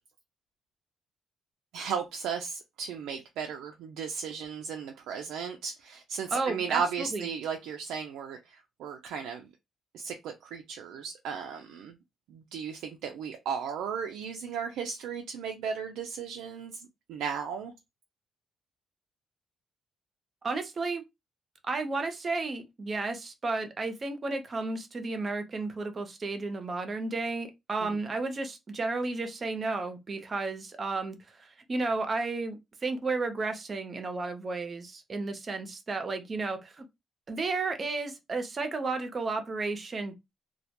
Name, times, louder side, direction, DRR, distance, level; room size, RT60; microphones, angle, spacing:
voice 1, 1.7-9.5 9.9-12.0 12.3-17.7 27.8-27.9, right 6 dB, 90° right, 0.3 m, -35 dB
voice 2, 6.3-7.3 20.4-21.0 21.7-36.8 37.3-40.2, right 3 dB, 35° right, 0.6 m, -33 dB
2.2 x 2.1 x 2.8 m
cardioid pair, 90°, 0 cm